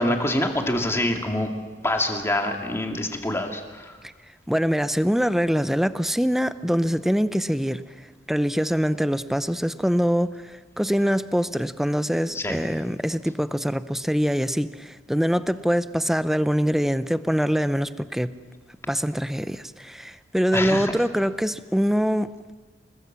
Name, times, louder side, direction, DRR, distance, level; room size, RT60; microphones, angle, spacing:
voice 1, 0.0-1.5 1.8-3.9 12.3-12.6 20.5-20.9, left 1 dB, 15° left, 3 dB, 2.5 m, -25 dB
voice 2, 4.5-7.9 8.3-18.4 18.9-22.5, equal, ahead, 13 dB, 0.7 m, -24 dB
29.5 x 20.0 x 7.6 m, 1.4 s
head